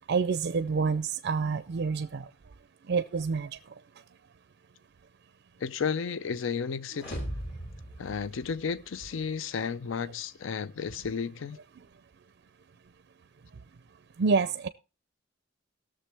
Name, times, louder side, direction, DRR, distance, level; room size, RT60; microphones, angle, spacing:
voice 1, 0.0-2.3 2.9-3.5 14.2-14.7, right 5 dB, 55° right, 0.4 m, -27 dB
voice 2, 5.6-7.2 8.0-11.6, left 6 dB, 70° left, 0.5 m, -33 dB
sound 1, 6.9-9.1, equal, 55° left, 2.9 m, -39 dB
18.5 x 6.8 x 3.3 m
head